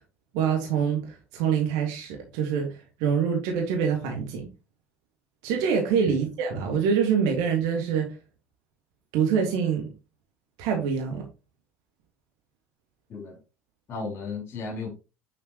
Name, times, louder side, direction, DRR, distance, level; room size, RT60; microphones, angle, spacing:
voice 1, 0.3-4.5 5.4-8.1 9.1-9.9 10.6-11.2, right 7 dB, 60° right, 1.9 m, -25 dB
voice 2, 13.9-14.9, left 4 dB, 35° left, 4.5 m, -34 dB
9.2 x 5.8 x 3.0 m
figure-of-eight pair, 65°, 7 cm